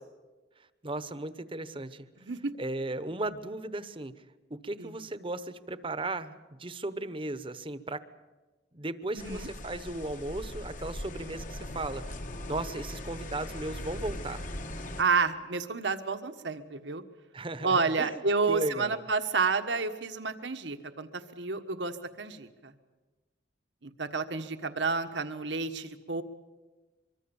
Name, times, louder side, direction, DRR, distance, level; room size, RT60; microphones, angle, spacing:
voice 1, 0.8-2.1 2.6-4.1 4.5-8.0 8.7-12.2 12.5-14.5 17.3-19.0, right 2 dB, 30° right, 13 dB, 1.0 m, -36 dB
voice 2, 9.1-9.5 15.0-17.0 17.6-22.7 23.8-26.2, right 4 dB, 80° right, 9 dB, 1.5 m, -30 dB
sound 1, 9.2-15.0, left 1 dB, 45° left, 1.4 m, -40 dB
24.5 x 23.5 x 7.2 m, 1.2 s
head